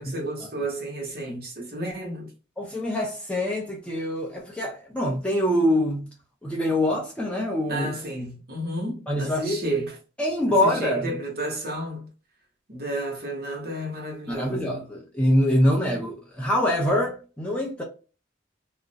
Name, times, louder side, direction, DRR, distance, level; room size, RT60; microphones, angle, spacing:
voice 1, 0.0-2.3 7.7-10.0 10.4-12.1 12.7-14.9, right 1 dB, 55° right, 0.9 m, -32 dB
voice 2, 2.6-6.1 6.4-7.9 9.1-9.6 10.2-11.1 14.3-17.8, left 1 dB, 5° left, 0.4 m, -24 dB
2.3 x 2.0 x 2.6 m
head